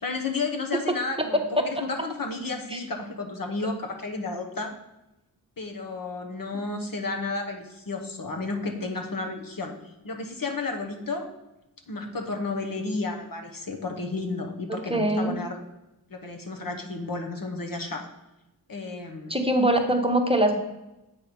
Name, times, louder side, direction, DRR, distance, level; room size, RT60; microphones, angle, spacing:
voice 1, 0.0-4.7 5.6-11.3 11.9-15.6 16.1-18.1 18.7-19.3, left 3 dB, 60° left, 3 dB, 1.1 m, -32 dB
voice 2, 14.7-15.3 19.3-20.6, right 1 dB, 15° right, 3 dB, 1.0 m, -23 dB
7.9 x 4.5 x 5.1 m, 0.95 s
wide cardioid pair, 65°, 38 cm